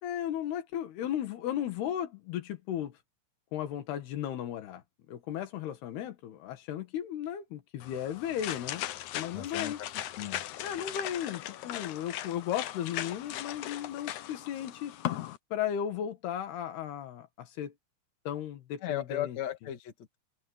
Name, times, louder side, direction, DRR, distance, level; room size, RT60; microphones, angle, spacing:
voice 1, 0.0-3.0 3.5-4.8 5.1-8.8 9.1-9.8 10.6-15.0 15.5-17.7 18.3-19.4, left 10 dB, 75° left, 3.7 m, -35 dB
sound 1, 7.8-15.4, left 13 dB, 90° left, 1.6 m, -38 dB
voice 2, 9.3-9.9 10.2-10.5 18.8-20.2, left 12 dB, 45° left, 3.4 m, -36 dB
omnidirectional pair, 4.8 m